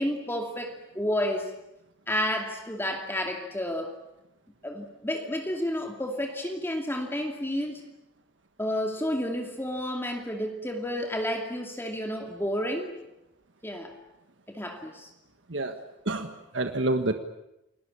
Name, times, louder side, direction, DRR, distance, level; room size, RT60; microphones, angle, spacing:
voice 1, 0.0-1.5 2.1-3.9 4.6-7.8 8.6-12.9 13.6-13.9 14.5-15.1, equal, 10° left, 3 dB, 2.5 m, -31 dB
voice 2, 15.5-17.1, right 2 dB, 70° right, 7 dB, 1.5 m, -29 dB
29.5 x 20.0 x 8.7 m, 0.88 s
head